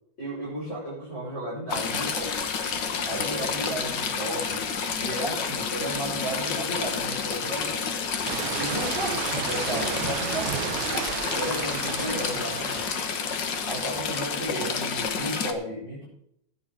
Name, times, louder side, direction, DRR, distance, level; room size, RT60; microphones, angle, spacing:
voice 1, 0.2-2.4 2.8-4.7 5.0-7.9 8.6-11.0 11.3-13.0 13.7-16.0, right 1 dB, 20° left, -9 dB, 5.9 m, -34 dB
Stream / Trickle dribble, 1.7-15.5, left 6 dB, 75° left, 1.0 m, -30 dB
sound 1, 8.2-13.3, right 14 dB, 80° right, 1.9 m, -33 dB
14.5 x 10.5 x 3.8 m, 0.73 s
omnidirectional pair, 3.8 m